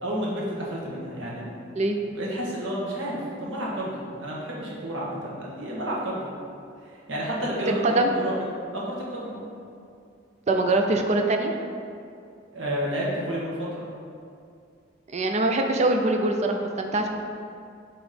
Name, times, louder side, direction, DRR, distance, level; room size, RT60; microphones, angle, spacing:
voice 1, 0.0-1.5 2.1-6.3 6.9-9.4 12.5-13.9, equal, 80° right, -5 dB, 1.4 m, -31 dB
voice 2, 7.7-8.2 10.5-11.6 15.1-17.1, right 2 dB, 35° right, 3 dB, 0.5 m, -23 dB
6.1 x 3.1 x 5.0 m, 2.4 s
head